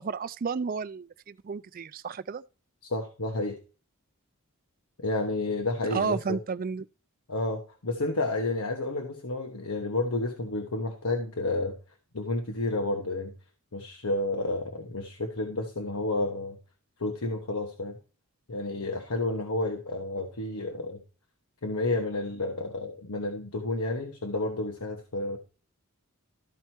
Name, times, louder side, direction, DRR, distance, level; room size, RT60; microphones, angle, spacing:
voice 1, 0.0-2.4 5.9-6.9, right 5 dB, 40° right, 0.4 m, -32 dB
voice 2, 2.8-3.6 5.0-6.4 7.3-11.7 12.1-13.3 13.7-16.6 17.0-18.0 18.5-21.0 21.6-25.4, left 2 dB, 80° left, 1.3 m, -30 dB
13.5 x 4.6 x 4.4 m
head